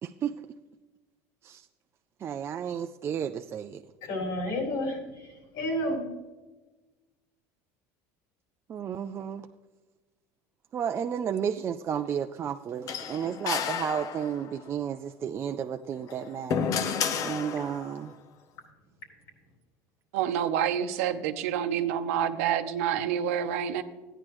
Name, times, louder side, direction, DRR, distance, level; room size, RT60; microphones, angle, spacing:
voice 1, 0.0-0.4 1.4-1.6 2.2-3.8 8.7-9.5 10.7-16.7 17.2-18.1, right 8 dB, 35° right, 7 dB, 0.4 m, -32 dB
voice 2, 4.0-6.1, left 1 dB, 75° left, 0 dB, 3.9 m, -31 dB
sound 1, 12.9-14.6 16.0-18.0, left 6 dB, 50° left, 0.7 m, -31 dB
voice 3, 20.1-23.8, right 9 dB, 85° right, 9 dB, 0.7 m, -28 dB
14.0 x 9.9 x 3.1 m, 1.2 s
supercardioid pair, 110°, 8 cm